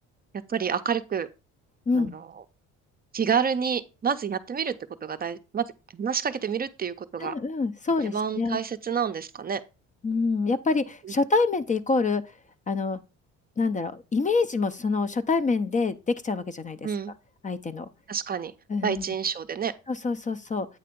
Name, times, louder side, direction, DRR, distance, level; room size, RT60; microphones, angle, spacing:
voice 1, 0.5-1.3 1.9-2.4 3.1-4.7 5.0-5.6 5.9-7.3 8.0-9.6 11.0-11.1 16.8-17.1 18.1-18.5 18.8-19.7, right 7 dB, 30° right, 0.5 m, -28 dB
voice 2, 7.2-8.6 10.0-12.2 12.7-13.0 13.6-16.8 17.4-17.9 18.7-19.0 19.9-20.7, left 4 dB, 25° left, 0.5 m, -26 dB
8.5 x 3.3 x 5.2 m
cardioid pair, 100°, 30 cm